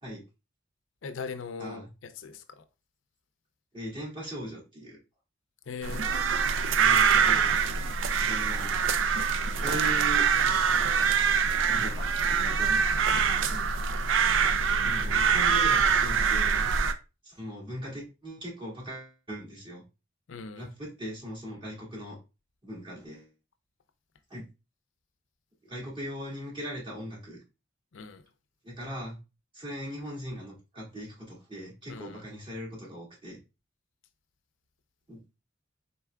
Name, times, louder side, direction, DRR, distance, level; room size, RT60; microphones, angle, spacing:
voice 1, 1.0-2.6 5.7-6.1 13.5-13.8 20.3-20.7 27.9-28.2 31.9-32.2, left 5 dB, 85° left, 0.5 m, -40 dB
voice 2, 1.6-1.9 3.7-5.0 6.8-7.5 8.2-8.7 9.6-10.3 11.7-12.9 14.8-16.7 17.2-19.8 20.5-22.2 22.6-23.3 24.3-24.4 25.6-27.4 28.6-29.2 29.5-33.4 35.1-35.2, equal, 25° right, 2.1 m, -39 dB
sound 1, 5.8-16.9, right 6 dB, 90° right, 0.4 m, -24 dB
4.4 x 4.1 x 2.3 m
head